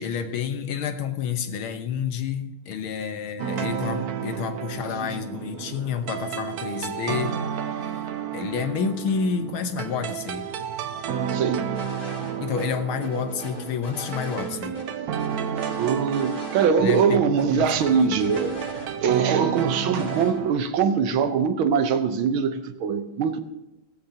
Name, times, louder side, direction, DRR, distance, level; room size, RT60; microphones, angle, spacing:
voice 1, 0.0-10.5 12.4-14.8 16.8-18.1, left 6 dB, 90° left, 1.9 m, -29 dB
sound 1, 3.4-20.5, right 8 dB, 65° right, 1.0 m, -31 dB
voice 2, 11.3-11.7 15.8-18.5 19.0-23.4, right 6 dB, 80° right, 1.7 m, -22 dB
sound 2, 11.7-12.3 12.6-12.7 13.0-14.5 14.7-14.8 15.2-16.7 16.9-17.0 17.4-19.2 19.5-20.3, left 1 dB, 45° left, 4.9 m, -40 dB
17.0 x 14.5 x 2.8 m
omnidirectional pair, 2.2 m